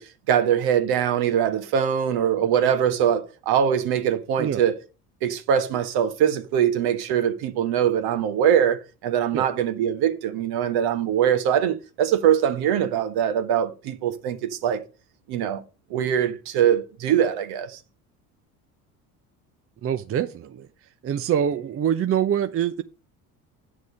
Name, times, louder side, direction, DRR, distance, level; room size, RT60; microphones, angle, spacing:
voice 1, 0.0-4.7 5.2-14.8 15.3-15.6 15.9-17.8, right 9 dB, 55° right, 1.5 m, -22 dB
voice 2, 19.8-20.7 21.0-22.8, right 9 dB, 30° right, 0.7 m, -25 dB
9.8 x 6.4 x 5.4 m
figure-of-eight pair, 60°, 45 cm